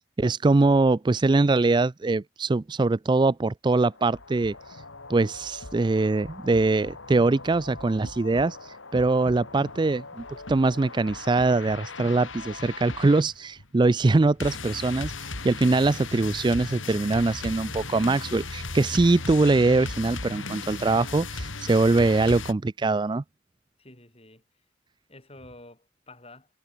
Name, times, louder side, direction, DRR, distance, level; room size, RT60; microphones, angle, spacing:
voice 1, 0.2-4.8 5.1-23.2, right 3 dB, 25° right, 0.4 m, -23 dB
Heavy Lowtuned Metal Groove, 3.9-22.5, left 3 dB, 90° left, 4.1 m, -38 dB
sound 1, 14.2-21.0, equal, 10° left, 3.5 m, -50 dB
voice 2, 23.8-24.4 25.1-26.5, left 2 dB, 30° left, 7.8 m, -49 dB
head